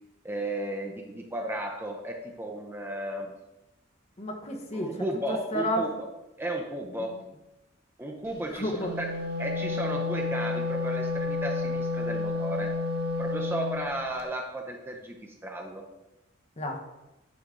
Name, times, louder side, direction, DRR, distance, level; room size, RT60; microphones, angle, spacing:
voice 1, 0.2-3.3 4.7-6.1 6.4-7.2 8.0-9.1 9.4-12.7 13.2-15.8, right 1 dB, 10° right, 1 dB, 0.6 m, -34 dB
voice 2, 4.2-5.9 7.0-7.1 8.5-8.9 16.6-16.9, equal, 35° left, 3 dB, 1.1 m, -32 dB
Wind instrument woodwind instrument, 8.7-13.9, left 3 dB, 50° right, 0.9 m, -30 dB
9.7 x 5.0 x 3.8 m, 0.97 s
head